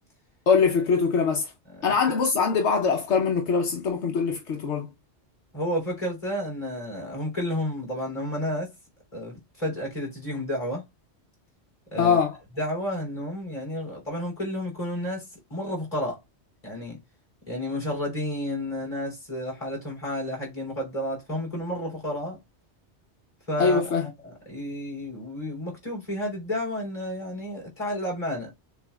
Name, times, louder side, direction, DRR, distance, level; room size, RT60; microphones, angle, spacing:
voice 1, 0.5-1.5 1.8-4.9 12.0-12.3 23.6-24.1, left 5 dB, 75° left, 1.0 m, -23 dB
voice 2, 5.5-8.7 9.1-10.8 11.9-12.2 12.6-16.2 16.6-17.0 17.5-22.4 23.5-23.8 24.2-28.5, left 1 dB, 30° left, 3.0 m, -31 dB
6.8 x 2.4 x 2.3 m
omnidirectional pair, 1.2 m